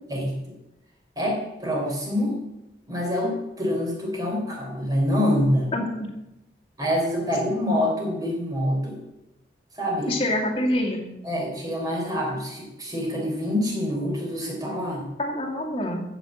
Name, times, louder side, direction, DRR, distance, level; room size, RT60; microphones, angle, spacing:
voice 1, 1.2-2.4 2.9-5.7 6.8-9.0 9.8-10.2 11.2-15.1, equal, 20° right, -2 dB, 4.1 m, -26 dB
voice 2, 5.7-6.1 10.1-11.0 15.2-16.0, left 1 dB, 30° left, -1 dB, 2.4 m, -26 dB
14.0 x 6.1 x 8.0 m, 0.91 s
head